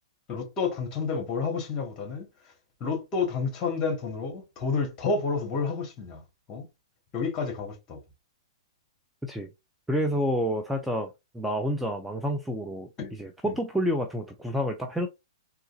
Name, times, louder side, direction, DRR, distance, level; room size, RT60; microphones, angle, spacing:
voice 1, 0.3-2.3 2.8-6.2 6.5-6.7 7.1-8.0 13.0-13.1 13.4-13.6, left 4 dB, 30° left, 1.9 m, -30 dB
voice 2, 9.9-11.1 11.3-15.1, equal, 5° right, 0.5 m, -29 dB
3.7 x 2.8 x 2.7 m
hypercardioid pair, 115°, 3 cm